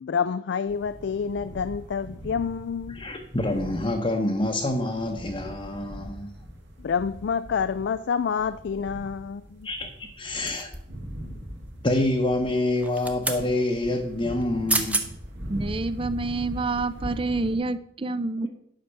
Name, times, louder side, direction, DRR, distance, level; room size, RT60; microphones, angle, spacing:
voice 1, 0.0-3.1 6.8-9.7, left 6 dB, 60° left, 0.3 m, -28 dB
sound 1, 0.7-17.6, equal, 60° right, 2.1 m, -41 dB
voice 2, 2.9-6.3 9.6-10.7 11.8-15.1 18.4-18.5, left 1 dB, 25° left, 0.9 m, -27 dB
sound 2, 10.5-11.0 12.8-13.4 14.4-14.5 14.7-15.1 15.6-15.8, right 2 dB, 10° right, 0.8 m, -28 dB
voice 3, 15.5-18.5, right 3 dB, 25° right, 0.5 m, -28 dB
10.0 x 5.8 x 6.5 m
head